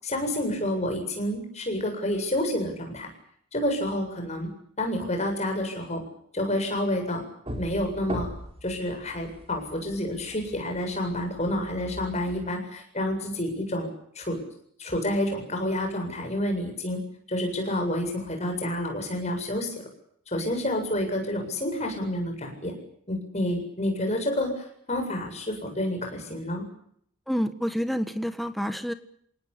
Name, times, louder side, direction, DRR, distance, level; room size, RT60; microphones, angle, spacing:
voice 1, 0.0-3.1 3.5-4.5 4.8-6.0 6.3-7.2 7.6-8.3 8.6-13.9 14.1-14.4 14.8-17.0 17.3-19.7 20.3-22.7 23.1-26.7, left 1 dB, 30° left, 4 dB, 7.6 m, -29 dB
sound 1, 7.5-12.5, equal, 25° right, 4.2 m, -40 dB
voice 2, 27.3-28.9, equal, ahead, 9 dB, 1.4 m, -28 dB
28.0 x 19.0 x 8.7 m, 0.68 s
head